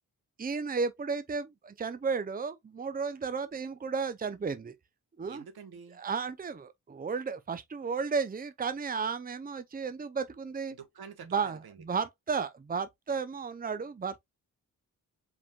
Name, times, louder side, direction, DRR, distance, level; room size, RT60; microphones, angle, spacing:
voice 1, 0.4-4.7 5.2-5.4 6.0-10.8 11.3-14.2, right 5 dB, 25° right, 0.6 m, -33 dB
voice 2, 5.3-6.0 10.7-12.0, right 6 dB, 85° right, 1.2 m, -48 dB
4.8 x 3.6 x 2.3 m
cardioid pair, 70°, 36 cm